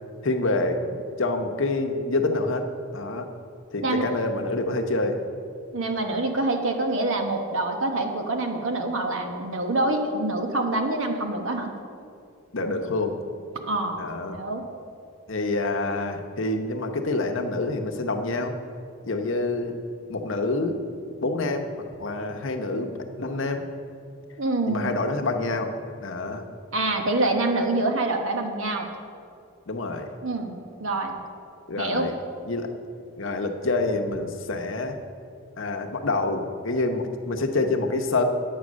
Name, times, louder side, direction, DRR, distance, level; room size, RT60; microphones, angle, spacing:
voice 1, 0.2-0.8 1.2-2.7 2.9-3.3 3.7-5.2 12.5-13.2 14.0-14.4 15.3-18.5 19.0-19.8 20.1-20.8 21.2-21.7 22.0-22.9 23.2-23.7 24.7-25.7 26.0-26.4 29.7-30.1 31.7-32.1 32.4-32.7 33.2-35.0 35.6-38.2, left 2 dB, 60° left, 4 dB, 0.9 m, -27 dB
voice 2, 5.7-11.7 13.6-14.6 24.4-24.9 26.7-28.9 30.2-31.1 31.8-32.1, right 2 dB, 65° right, 4 dB, 1.2 m, -26 dB
9.5 x 8.4 x 6.3 m, 2.4 s
head